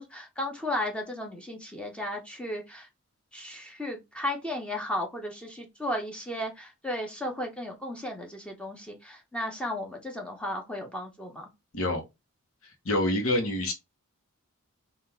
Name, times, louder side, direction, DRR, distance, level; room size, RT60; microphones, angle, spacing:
voice 1, 0.0-2.9 3.3-11.5, left 1 dB, 5° left, 0.9 m, -34 dB
voice 2, 12.8-13.7, left 1 dB, 65° left, 1.1 m, -26 dB
3.7 x 2.5 x 4.5 m
head